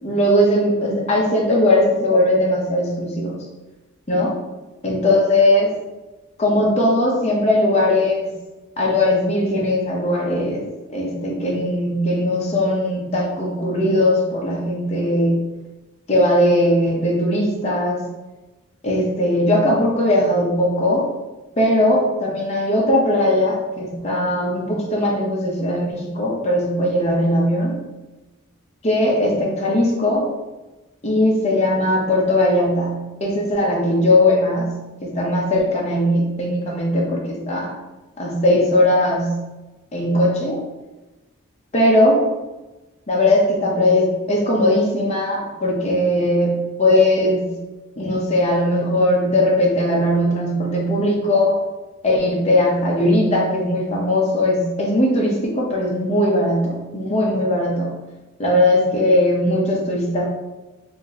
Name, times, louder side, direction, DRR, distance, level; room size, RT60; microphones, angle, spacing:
voice 1, 0.0-3.4 4.1-4.4 4.8-5.7 6.4-8.4 8.8-10.6 10.9-15.5 16.1-18.1 18.8-21.1 21.6-27.9 28.8-30.3 31.0-37.7 38.2-39.4 39.9-40.6 41.7-42.2 43.1-47.6 48.0-51.6 52.0-57.9 58.4-60.3, left 1 dB, 30° left, -3 dB, 0.7 m, -19 dB
2.8 x 2.6 x 3.9 m, 1.1 s
head